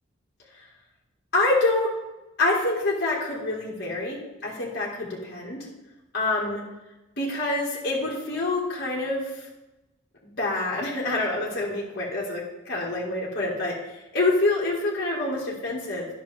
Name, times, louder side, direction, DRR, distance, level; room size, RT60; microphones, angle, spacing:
voice 1, 1.3-1.9 2.4-5.7 6.1-6.6 7.2-9.5 10.4-13.7 14.1-16.1, left 2 dB, 55° left, -5 dB, 1.7 m, -26 dB
10.5 x 6.0 x 3.4 m, 1.0 s
head